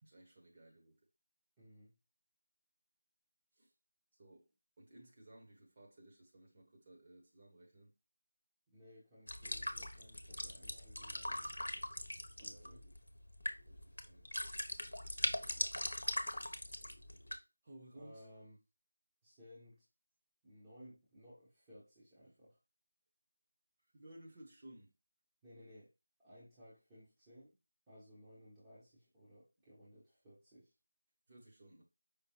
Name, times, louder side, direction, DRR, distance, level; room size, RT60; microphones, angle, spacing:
voice 1, 0.0-1.1 3.6-3.7 4.2-4.5 4.8-7.9 12.4-12.9 13.7-14.3 17.6-18.3 23.9-24.9 31.3-31.8, right 1 dB, 25° right, 1.2 m, -58 dB
voice 2, 1.6-1.9 8.7-11.5 12.4-12.8 17.9-18.6 19.2-19.9 20.4-22.6 25.4-25.9 26.2-27.6 27.9-30.7, equal, 10° right, 1.0 m, -59 dB
sound 1, 9.3-17.4, left 1 dB, 65° left, 0.9 m, -41 dB
5.3 x 3.4 x 2.9 m
figure-of-eight pair, 165°, 0 cm